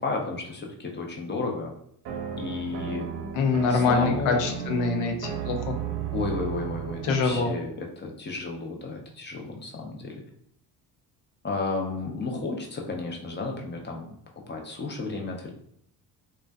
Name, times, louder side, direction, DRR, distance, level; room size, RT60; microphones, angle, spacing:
voice 1, 0.0-1.7 2.4-3.1 3.7-4.5 6.1-10.2 11.4-14.1 14.5-15.5, left 3 dB, 25° left, 1 dB, 0.6 m, -32 dB
sound 1, 2.0-7.6, right 7 dB, 60° right, 0.6 m, -34 dB
voice 2, 3.3-5.8 7.0-7.5, left 4 dB, 75° left, 4 dB, 0.7 m, -24 dB
2.5 x 2.2 x 2.2 m, 0.69 s
supercardioid pair, 70°, 46 cm